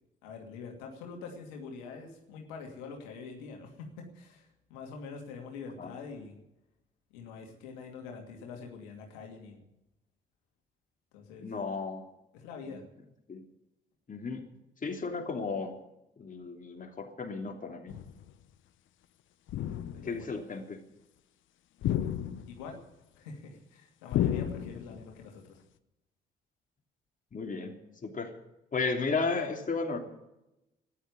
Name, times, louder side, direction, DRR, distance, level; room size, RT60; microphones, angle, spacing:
voice 1, 0.2-6.3 7.1-9.6 11.1-11.5 12.3-12.8 19.5-19.6 19.9-20.3 22.5-22.8 23.2-25.6, left 5 dB, 85° left, 2 dB, 2.5 m, -45 dB
voice 2, 11.4-12.0 13.3-13.4 14.1-14.4 14.8-15.7 16.2-18.0 20.0-20.8 27.3-27.7 28.0-28.3 28.7-30.0, left 4 dB, 40° left, 2 dB, 3.1 m, -34 dB
sound 1, 17.9-18.3 19.5-20.2 21.8-22.7 24.1-25.1, left 11 dB, 65° left, 0.9 m, -32 dB
13.0 x 11.0 x 9.6 m, 0.91 s
hypercardioid pair, 50°, 21 cm